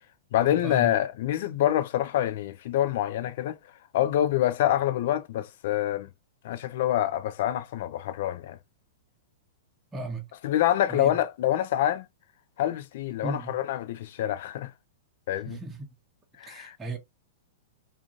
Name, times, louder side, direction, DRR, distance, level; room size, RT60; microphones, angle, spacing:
voice 1, 0.3-3.6 3.9-6.1 6.4-8.6 10.4-12.1 12.6-14.7 15.3-15.6 16.4-16.8, left 12 dB, 55° left, 0.4 m, -26 dB
voice 2, 9.9-10.2 10.9-11.1 13.2-13.5 15.4-15.8 16.5-17.0, right 2 dB, 15° right, 0.8 m, -35 dB
3.6 x 2.5 x 2.4 m
figure-of-eight pair, 100°, 0 cm